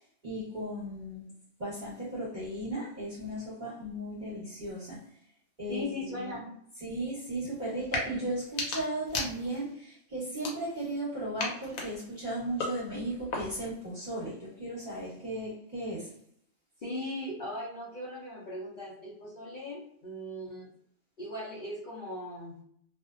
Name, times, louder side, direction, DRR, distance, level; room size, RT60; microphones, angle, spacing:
voice 1, 0.2-1.2 1.6-5.0 5.6-6.4 6.8-16.1, right 1 dB, 35° right, -9 dB, 1.0 m, -36 dB
voice 2, 5.7-6.5 16.8-20.7 21.2-22.6, left 1 dB, 50° left, -6 dB, 0.6 m, -38 dB
sound 1, 7.8-8.1 8.4-9.7 10.3-11.0 11.4-13.7, left 3 dB, 85° left, 1.1 m, -37 dB
2.6 x 2.1 x 2.4 m, 0.67 s
omnidirectional pair, 1.4 m